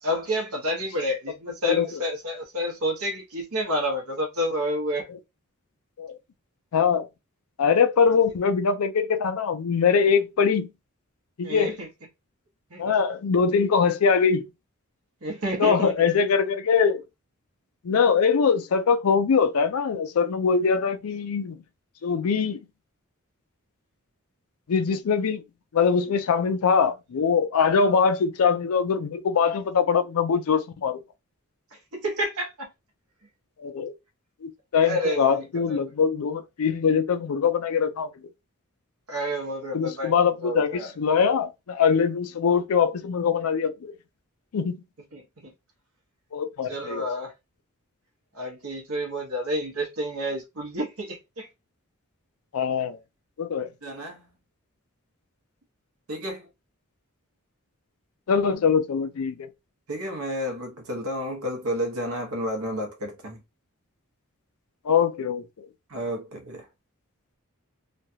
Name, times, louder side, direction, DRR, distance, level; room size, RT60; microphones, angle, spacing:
voice 1, 0.0-5.1 11.4-11.9 12.7-12.9 15.2-16.1 31.7-32.7 34.8-35.8 39.1-40.9 45.1-45.5 46.7-47.3 48.3-51.5 53.8-54.3 56.1-56.5 59.9-63.4 65.9-66.7, equal, 85° right, 1.0 m, -30 dB
voice 2, 6.7-7.1 7.6-10.7 11.4-11.7 12.8-14.5 15.6-17.0 17.8-21.6 22.0-22.6 24.7-25.4 25.7-31.0 33.6-33.9 34.4-38.1 39.7-43.9 44.5-44.8 46.3-47.0 52.5-53.0 53.4-53.7 58.3-59.5 64.8-65.7, left 6 dB, 80° left, 0.4 m, -22 dB
3.1 x 2.3 x 2.7 m
head